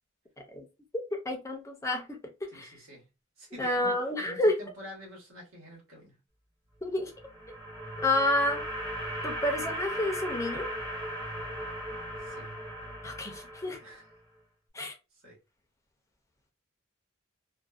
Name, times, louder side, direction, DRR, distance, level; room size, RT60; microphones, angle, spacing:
voice 1, 1.1-2.7 3.6-4.6 6.8-7.1 8.0-8.6 9.2-10.7 13.0-13.8 14.7-14.9, left 1 dB, 15° left, 0.5 m, -29 dB
voice 2, 2.5-3.1 3.4-4.0 4.2-6.2 12.2-12.5 13.8-14.1 15.1-15.4, equal, 85° right, 1.2 m, -48 dB
sound 1, 7.0-14.2, equal, 20° right, 0.8 m, -37 dB
2.5 x 2.1 x 2.3 m
head